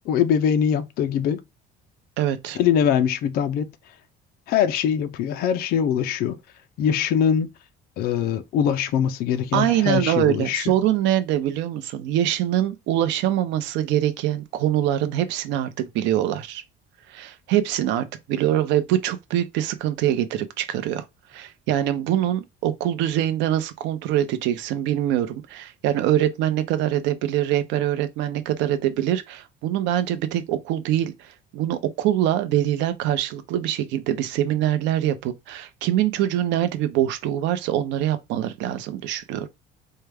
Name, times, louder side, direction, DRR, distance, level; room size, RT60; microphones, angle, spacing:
voice 1, 0.1-1.4 2.5-3.7 4.5-6.4 6.8-7.5 8.0-10.6, left 8 dB, 55° left, 0.4 m, -22 dB
voice 2, 2.2-2.6 9.5-16.6 17.1-21.0 21.3-39.5, right 12 dB, 75° right, 0.6 m, -24 dB
4.5 x 2.2 x 3.3 m
cardioid pair, 170°, 19 cm